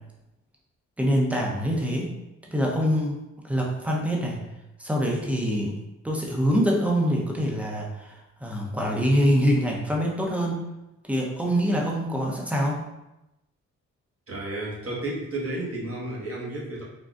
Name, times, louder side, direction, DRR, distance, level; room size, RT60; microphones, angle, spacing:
voice 1, 1.0-2.1 2.5-3.2 3.4-4.4 4.8-5.8 6.0-10.7 11.1-12.8, equal, 5° right, -2 dB, 0.8 m, -25 dB
voice 2, 14.3-16.8, right 1 dB, 45° right, -5 dB, 1.3 m, -32 dB
3.8 x 2.3 x 2.4 m, 0.93 s
supercardioid pair, 55°, 32 cm